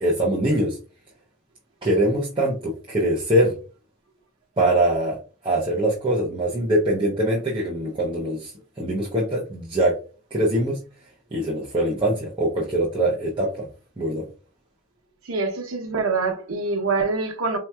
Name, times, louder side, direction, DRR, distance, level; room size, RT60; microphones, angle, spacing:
voice 1, 0.0-0.8 1.8-3.5 4.6-5.2 5.4-10.0 10.3-10.8 11.3-13.7 14.0-14.2, right 1 dB, 25° right, 0.6 m, -23 dB
voice 2, 15.3-17.6, right 4 dB, 90° right, 0.8 m, -25 dB
4.3 x 2.8 x 2.2 m
head